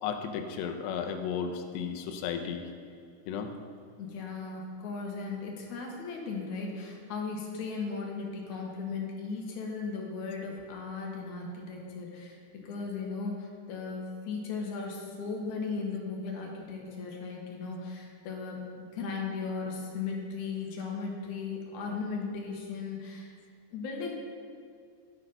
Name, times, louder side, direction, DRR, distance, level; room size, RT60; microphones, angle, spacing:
voice 1, 0.0-2.7 3.3-3.5, left 7 dB, 90° left, 6 dB, 2.9 m, -34 dB
voice 2, 4.0-12.4 12.6-23.3 23.7-24.1, left 4 dB, 65° left, 0 dB, 2.1 m, -37 dB
11.0 x 6.2 x 5.5 m, 2.2 s
omnidirectional pair, 4.8 m